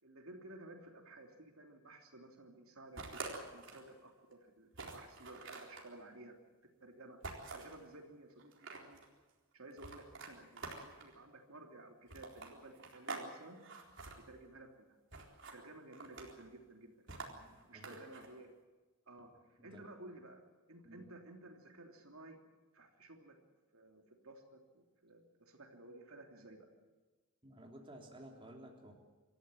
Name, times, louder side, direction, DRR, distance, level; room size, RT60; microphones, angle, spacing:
voice 1, 0.0-6.4 6.8-7.2 7.5-9.0 9.5-13.6 14.2-14.9 15.5-17.3 17.7-18.5 19.1-22.4 22.7-23.4 23.7-26.7, right 2 dB, 80° right, 3 dB, 3.2 m, -55 dB
sound 1, 3.0-3.9 4.3-4.4 4.7-5.9 7.2-7.8 8.4-9.1 9.8-11.1 12.1-13.3 13.5-14.1 15.1-15.6 15.9-16.4 17.1-18.3, right 3 dB, 60° right, 4.1 m, -47 dB
voice 2, 17.2-18.0 19.6-19.8 20.8-21.1 27.4-28.9, right 1 dB, 25° right, 1 dB, 3.2 m, -55 dB
26.0 x 14.0 x 9.3 m, 1.3 s
head